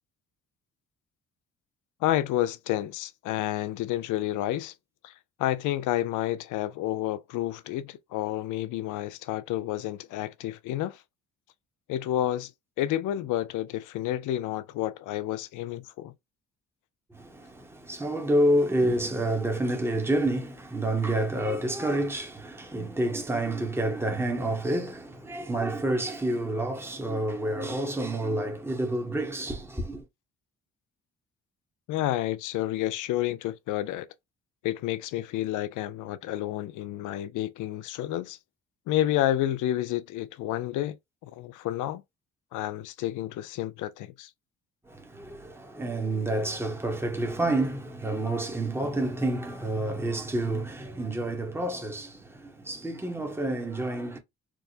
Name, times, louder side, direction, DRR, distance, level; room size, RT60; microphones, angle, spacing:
voice 1, 2.0-4.7 5.0-5.1 5.4-11.0 11.9-12.5 12.8-16.1 31.9-34.1 34.6-38.4 38.9-41.0 41.2-42.0 42.5-44.3, left 13 dB, 85° left, 0.5 m, -30 dB
voice 2, 17.1-30.0 44.9-54.2, right 1 dB, 10° right, 1.0 m, -29 dB
4.6 x 2.1 x 2.7 m
cardioid pair, 90°, 30 cm